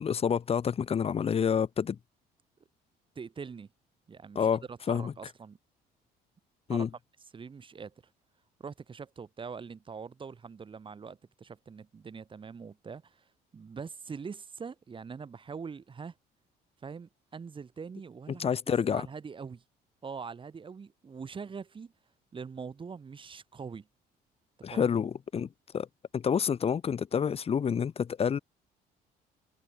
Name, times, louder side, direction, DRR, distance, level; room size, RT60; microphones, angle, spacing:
voice 1, 0.0-2.0 4.3-5.1 6.7-6.9 18.4-19.1 24.6-25.9 26.1-28.4, left 7 dB, 35° left, 1.3 m, -28 dB
voice 2, 3.2-3.7 4.1-5.6 6.7-6.9 7.3-7.9 8.6-13.3 13.5-16.1 16.8-19.6 20.0-21.9 22.3-23.8 24.7-24.9, right 5 dB, 30° right, 2.1 m, -43 dB
cardioid pair, 110°, 17 cm